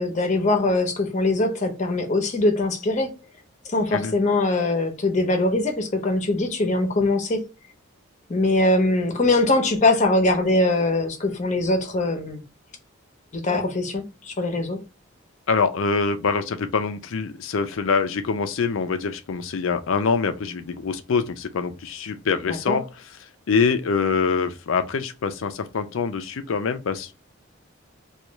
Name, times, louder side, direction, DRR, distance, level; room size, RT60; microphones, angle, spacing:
voice 1, 0.0-3.2 3.7-7.4 8.3-12.4 13.3-14.8 22.5-22.8, left 2 dB, 35° left, 0.7 m, -22 dB
voice 2, 15.5-22.8 23.5-27.1, left 5 dB, 75° left, 0.5 m, -24 dB
3.0 x 2.4 x 3.3 m
head